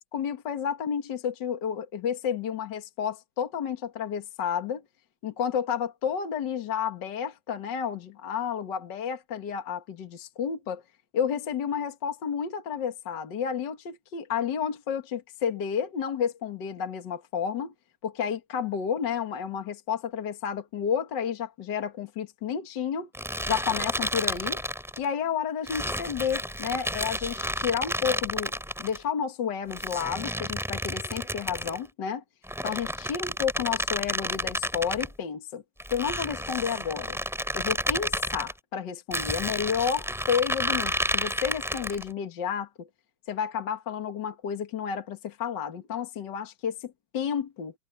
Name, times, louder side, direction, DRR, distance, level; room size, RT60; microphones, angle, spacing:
voice 1, 0.1-4.8 5.2-10.8 11.1-17.7 18.0-23.1 23.5-24.6 25.0-28.5 28.8-32.2 32.6-35.6 35.9-37.2 37.5-42.9 43.3-47.7, left 7 dB, 50° left, 1.4 m, -31 dB
sound 1, 23.1-25.0 25.7-29.0 29.7-31.8 32.4-35.1 35.8-38.5 39.1-42.1, equal, ahead, 4.7 m, -31 dB
omnidirectional pair, 4.0 m